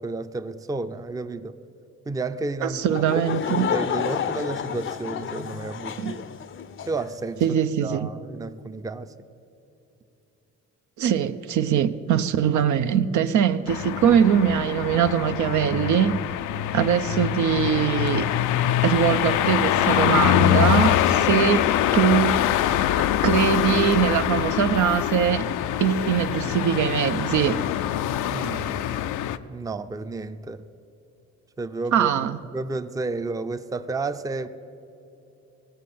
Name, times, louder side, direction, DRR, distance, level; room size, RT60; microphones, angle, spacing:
voice 1, 0.0-1.5 2.1-6.3 6.9-7.4 7.8-9.1 28.3-29.0 29.5-30.6 31.6-34.5, right 3 dB, 10° right, 0.5 m, -32 dB
voice 2, 2.6-3.7 6.0-6.1 7.4-8.1 11.0-16.2 16.7-18.3 18.8-22.4 23.2-25.5 25.8-27.6 31.9-32.4, right 9 dB, 75° right, 0.6 m, -22 dB
Laughter / Crowd, 2.9-7.1, left 8 dB, 45° left, 0.5 m, -30 dB
sound 1, 13.7-29.4, left 11 dB, 90° left, 0.5 m, -24 dB
18.0 x 7.6 x 7.0 m
cardioid pair, 90°, 30 cm